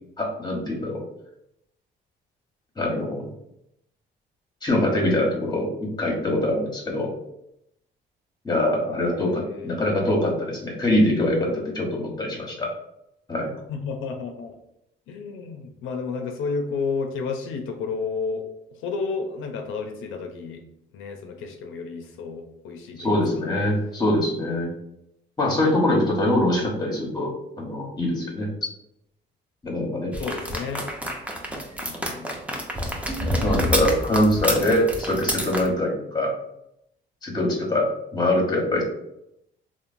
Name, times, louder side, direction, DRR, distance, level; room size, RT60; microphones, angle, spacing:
voice 1, 0.2-1.0 2.8-3.3 4.6-5.7 6.0-7.1 8.4-12.7 13.3-13.5 23.0-24.7 25.4-28.5 29.6-30.1 33.4-36.3 37.2-38.8, left 1 dB, 20° left, -1 dB, 0.9 m, -23 dB
voice 2, 8.9-9.7 13.7-14.5 15.1-18.4 18.7-20.6 20.9-23.2 30.2-30.9 31.7-32.4, left 4 dB, 85° left, 4 dB, 0.4 m, -31 dB
sound 1, 30.1-35.7, equal, 5° right, 0.5 m, -28 dB
2.9 x 2.1 x 2.5 m, 0.80 s
cardioid pair, 90°, 20 cm